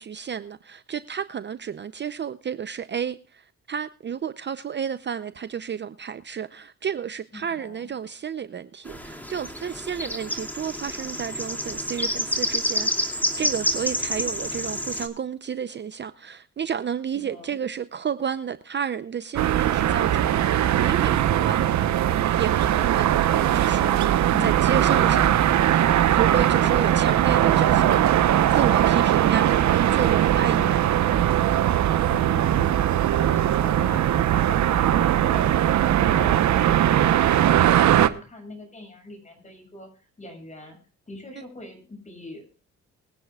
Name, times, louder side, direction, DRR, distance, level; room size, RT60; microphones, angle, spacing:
voice 1, 0.0-22.0 22.4-25.4 26.2-28.0 28.5-29.5 29.9-30.8, right 8 dB, 35° right, 0.6 m, -31 dB
voice 2, 7.3-7.9 17.2-17.6 24.3-24.8 26.5-27.0 30.6-31.1 32.1-40.8 41.1-42.6, left 2 dB, 25° left, 6.9 m, -41 dB
sound 1, 8.9-15.1, equal, 5° left, 2.5 m, -28 dB
sound 2, 19.4-38.1, right 11 dB, 70° right, 0.9 m, -20 dB
24.0 x 9.9 x 2.4 m
cardioid pair, 90°, 30 cm